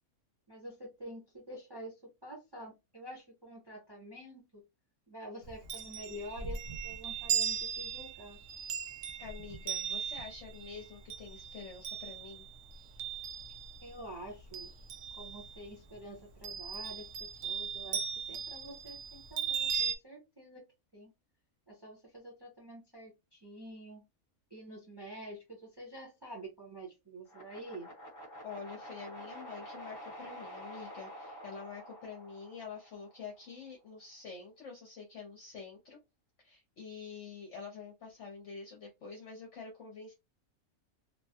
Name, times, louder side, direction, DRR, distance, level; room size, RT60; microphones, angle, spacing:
voice 1, 0.5-4.6 5.1-8.4 13.8-14.7 15.1-20.7 20.9-21.1 21.7-24.0 24.5-27.9, right 1 dB, 20° right, -2 dB, 0.8 m, -48 dB
Chime, 5.4-13.9 14.3-15.6 16.4-20.0, right 7 dB, 65° right, 0.8 m, -38 dB
voice 2, 9.2-12.5 28.4-36.0 36.4-40.1, left 5 dB, 60° left, 0 dB, 1.0 m, -47 dB
sound 1, 27.3-33.4, equal, 15° left, 1.0 m, -48 dB
3.1 x 2.2 x 2.7 m, 0.23 s
omnidirectional pair, 1.5 m